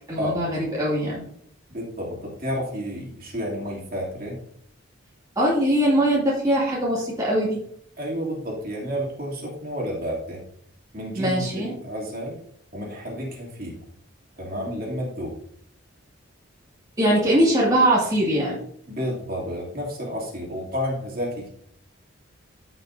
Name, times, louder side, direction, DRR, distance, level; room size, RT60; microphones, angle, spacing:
voice 1, 0.1-1.2 5.4-7.6 11.2-11.7 17.0-18.6, right 1 dB, 15° right, -6 dB, 2.2 m, -21 dB
voice 2, 1.7-4.4 8.0-10.4 10.9-12.4 12.7-13.8 14.4-15.3 18.9-21.5, equal, 45° right, -3 dB, 2.8 m, -31 dB
14.5 x 5.9 x 2.7 m, 0.66 s
head